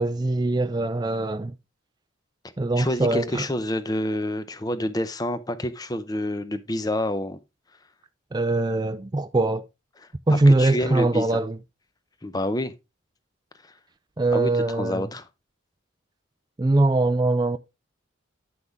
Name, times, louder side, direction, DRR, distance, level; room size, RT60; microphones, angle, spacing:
voice 1, 0.0-1.5 2.6-3.5 8.3-9.6 10.3-11.6 14.2-15.1 16.6-17.6, right 2 dB, 20° right, 0.4 m, -22 dB
voice 2, 2.8-7.4 10.3-11.4 12.2-12.7 13.6-13.7 14.3-15.3, left 1 dB, 20° left, 0.6 m, -28 dB
9.5 x 6.0 x 3.4 m
head